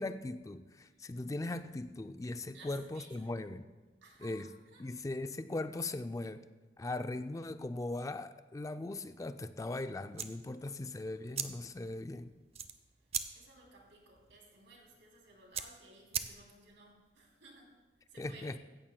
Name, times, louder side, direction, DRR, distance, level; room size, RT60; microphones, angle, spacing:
voice 1, 0.0-3.7 4.2-4.5 4.8-6.4 6.8-12.3 18.2-18.6, left 2 dB, 20° left, 10 dB, 0.4 m, -39 dB
voice 2, 2.5-3.3 4.0-4.9 13.3-17.8 18.1-18.5, right 2 dB, 85° right, -1 dB, 3.1 m, -58 dB
sound 1, 10.1-16.8, right 7 dB, 35° right, 0.6 m, -43 dB
16.0 x 14.0 x 2.2 m, 1.2 s
head